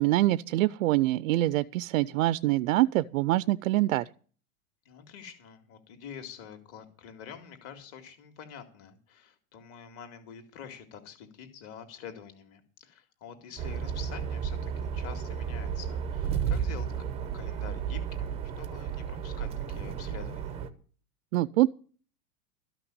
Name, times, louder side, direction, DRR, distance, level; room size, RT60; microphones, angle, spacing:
voice 1, 0.0-4.0 21.3-21.7, right 16 dB, 60° right, 0.5 m, -25 dB
voice 2, 4.8-20.6, left 8 dB, 30° left, 2.3 m, -47 dB
sound 1, 13.6-20.7, right 7 dB, 15° right, 0.6 m, -33 dB
13.5 x 6.0 x 9.6 m
supercardioid pair, 160°, 45 cm